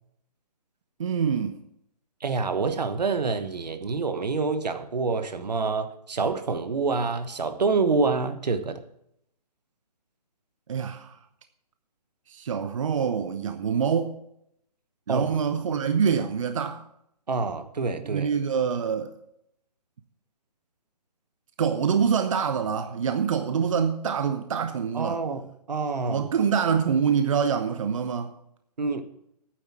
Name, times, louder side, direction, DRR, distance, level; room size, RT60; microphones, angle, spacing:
voice 1, 1.0-1.6 10.7-11.2 12.3-14.2 15.1-16.8 18.0-19.1 21.6-25.2 26.1-28.3, right 7 dB, 50° right, 0.8 m, -25 dB
voice 2, 2.2-8.8 15.1-15.3 17.3-18.3 24.9-26.3 28.8-29.0, right 4 dB, 80° right, 1.4 m, -27 dB
9.3 x 7.8 x 7.4 m
hypercardioid pair, 155°, 21 cm